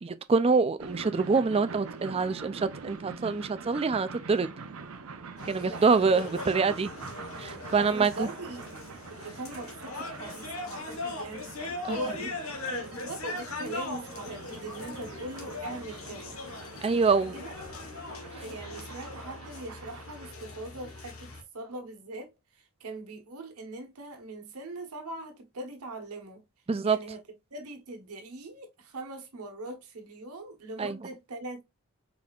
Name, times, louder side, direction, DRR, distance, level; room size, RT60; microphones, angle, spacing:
voice 1, 0.0-4.5 5.5-6.9 7.4-8.3 11.8-12.0 16.8-17.3 26.7-27.0 30.8-31.0, right 4 dB, 25° right, 0.3 m, -25 dB
sound 1, 0.8-20.3, right 4 dB, 70° right, 0.7 m, -45 dB
sound 2, 5.4-21.4, left 2 dB, 70° left, 1.3 m, -40 dB
voice 2, 5.6-6.2 7.7-8.6 9.1-16.4 17.1-17.5 18.4-22.3 22.6-26.4 26.8-27.2 27.5-31.6, right 2 dB, 90° right, 1.2 m, -41 dB
4.4 x 4.1 x 2.4 m
head